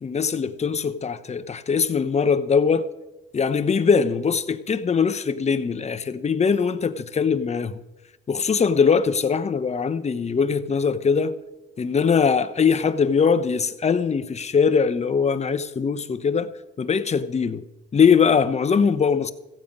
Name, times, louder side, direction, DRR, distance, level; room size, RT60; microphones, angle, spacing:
voice 1, 0.0-2.9 3.3-7.8 8.3-11.3 11.8-16.5 16.8-17.6 17.9-19.3, left 6 dB, 35° left, 0.8 m, -21 dB
15.5 x 8.5 x 5.4 m
cardioid pair, 90°, 20 cm